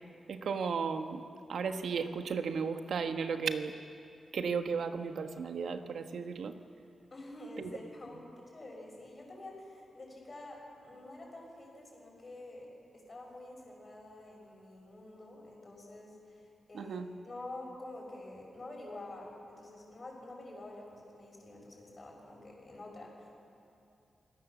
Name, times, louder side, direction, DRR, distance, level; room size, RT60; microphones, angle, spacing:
voice 1, 0.3-1.2 1.5-3.7 4.3-6.6 7.6-7.7 16.7-17.1, right 5 dB, 75° right, 7 dB, 1.3 m, -34 dB
voice 2, 7.1-12.7 13.1-23.3, left 2 dB, 35° left, -1 dB, 6.5 m, -48 dB
28.0 x 18.0 x 7.3 m, 2.6 s
wide cardioid pair, 115°, 0 cm